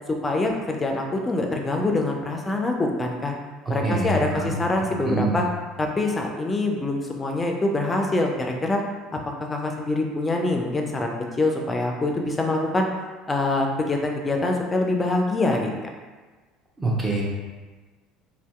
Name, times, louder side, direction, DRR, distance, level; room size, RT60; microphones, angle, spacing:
voice 1, 0.1-3.4 3.7-5.5 5.8-8.8 9.1-12.9 13.3-15.7, left 2 dB, 20° left, 1 dB, 0.4 m, -25 dB
voice 2, 3.6-4.5 5.0-5.4 16.8-17.2, right 2 dB, 20° right, -4 dB, 0.7 m, -25 dB
2.6 x 2.1 x 2.3 m, 1.3 s
hypercardioid pair, 70°, 0 cm